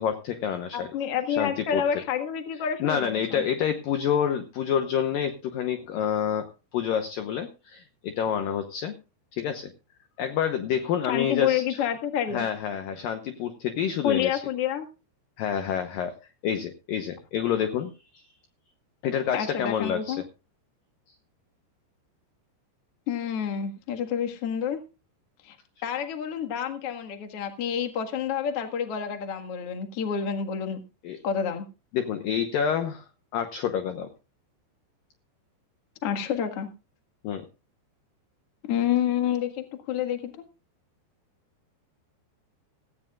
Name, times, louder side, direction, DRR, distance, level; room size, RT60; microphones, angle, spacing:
voice 1, 0.0-0.9 1.4-1.8 2.8-6.5 6.7-8.9 9.3-9.7 10.2-11.8 12.3-14.4 15.4-16.2 16.4-18.3 19.0-20.2 31.0-31.2 31.9-33.1 33.3-34.1 37.2-37.4, left 8 dB, 80° left, 8 dB, 2.0 m, -28 dB
voice 2, 0.7-3.4 11.1-12.5 14.0-14.9 19.3-20.2 23.1-24.8 25.4-25.6 25.8-30.8 31.2-31.6 36.0-36.7 38.7-40.3, left 8 dB, 55° left, 5 dB, 1.7 m, -28 dB
16.5 x 16.0 x 2.4 m, 0.30 s
omnidirectional pair, 5.3 m